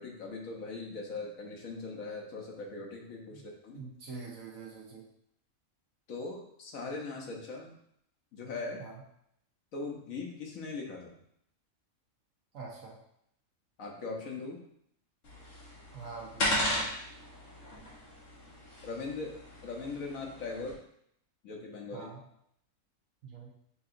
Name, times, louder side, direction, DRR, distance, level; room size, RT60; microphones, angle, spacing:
voice 1, 0.0-3.8 6.1-7.7 8.3-8.8 9.7-11.2 13.8-14.6 18.8-20.8 21.4-22.1, left 3 dB, 75° left, 0 dB, 1.3 m, -40 dB
voice 2, 3.7-5.1 8.8-9.0 12.5-13.0 15.9-16.7 21.9-22.2 23.2-23.5, right 4 dB, 70° right, -2 dB, 1.4 m, -45 dB
sound 1, 15.2-20.7, left 1 dB, 55° left, 1.6 m, -36 dB
6.6 x 2.8 x 2.5 m, 0.72 s
omnidirectional pair, 1.5 m